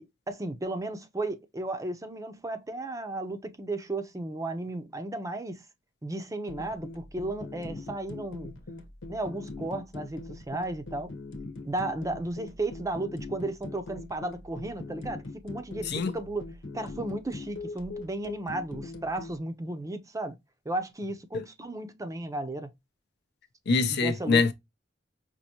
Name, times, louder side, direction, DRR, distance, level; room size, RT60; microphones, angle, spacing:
voice 1, 0.0-5.6 6.0-8.5 9.1-11.1 11.6-16.5 16.7-20.3 20.7-22.7 23.9-24.4, right 2 dB, 15° right, 0.6 m, -34 dB
sound 1, 6.5-19.4, left 3 dB, 90° left, 1.1 m, -41 dB
voice 2, 23.7-24.5, left 4 dB, 60° left, 0.6 m, -24 dB
5.4 x 2.6 x 2.8 m
head